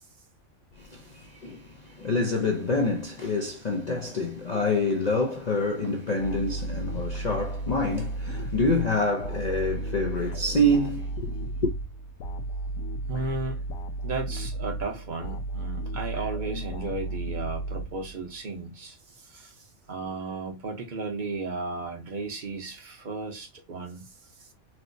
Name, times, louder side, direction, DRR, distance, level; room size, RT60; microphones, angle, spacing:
voice 1, 0.8-11.7, left 1 dB, 55° left, 0.4 m, -27 dB
sound 1, 6.2-18.4, right 2 dB, 90° left, 1.1 m, -34 dB
voice 2, 13.1-13.6 14.0-19.0 19.2-19.5 19.9-24.1, right 3 dB, 40° right, 0.8 m, -34 dB
4.4 x 2.0 x 2.6 m
omnidirectional pair, 1.5 m